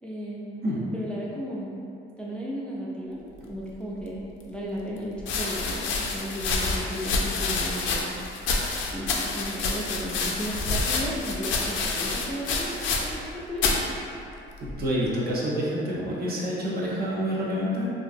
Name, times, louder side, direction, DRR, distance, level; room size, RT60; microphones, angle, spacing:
voice 1, 0.0-0.5 0.9-1.8 2.2-8.2 8.9-13.7, equal, 5° left, -5 dB, 0.3 m, -35 dB
sound 1, 4.1-4.2 5.2-13.3 13.6-13.9 14.6-15.0, left 3 dB, 75° left, 0.4 m, -28 dB
voice 2, 14.6-17.9, equal, 50° right, -5 dB, 0.7 m, -28 dB
2.8 x 2.5 x 2.5 m, 2.7 s
cardioid pair, 90°, 20 cm